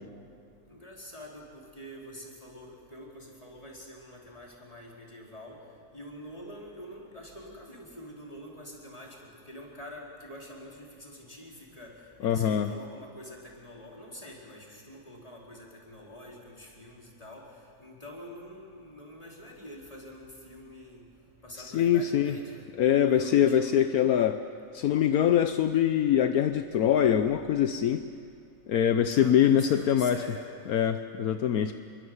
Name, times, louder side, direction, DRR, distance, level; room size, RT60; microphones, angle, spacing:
voice 1, 0.7-5.6 5.9-17.5 17.8-21.0 21.4-22.7 23.0-24.2 29.1-30.5, left 1 dB, 25° left, -2 dB, 4.6 m, -46 dB
voice 2, 12.2-12.7 21.6-22.3 22.8-24.4 24.7-28.0 28.7-30.2 30.7-31.7, left 9 dB, 75° left, 8 dB, 1.3 m, -24 dB
27.5 x 23.0 x 8.1 m, 2.3 s
omnidirectional pair, 1.6 m